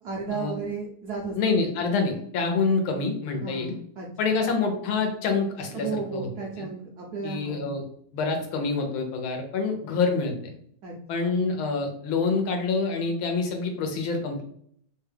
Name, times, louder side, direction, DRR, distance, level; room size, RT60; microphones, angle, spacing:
voice 1, 0.0-1.6 3.4-4.1 5.7-7.6 10.8-11.4, right 4 dB, 75° right, -2 dB, 0.8 m, -34 dB
voice 2, 1.3-3.7 4.2-6.3 6.6-6.7 7.2-7.8 8.1-10.3 11.1-14.4, left 4 dB, 80° left, 4 dB, 1.5 m, -26 dB
3.5 x 2.3 x 3.3 m, 0.63 s
omnidirectional pair, 2.3 m